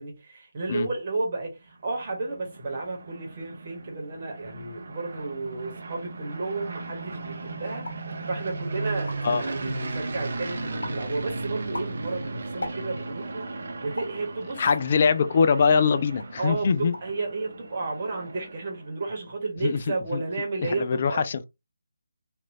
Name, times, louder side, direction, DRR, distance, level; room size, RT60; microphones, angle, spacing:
voice 1, 0.0-14.6 16.4-21.2, right 3 dB, 35° right, 1.2 m, -32 dB
sound 1, 1.7-18.9, right 3 dB, 55° right, 0.6 m, -36 dB
sound 2, 7.8-8.1 8.6-8.7 8.9-9.4 9.9-10.4 10.8-11.1 11.5-13.2 14.0-14.3 14.9-15.8 16.2-16.4 16.7-17.2 17.5-18.0, left 2 dB, 70° left, 0.9 m, -40 dB
voice 2, 14.6-16.9 19.6-19.8 20.1-20.2 20.6-21.4, left 5 dB, 40° left, 0.3 m, -22 dB
2.9 x 2.5 x 2.5 m
figure-of-eight pair, 155°, 0 cm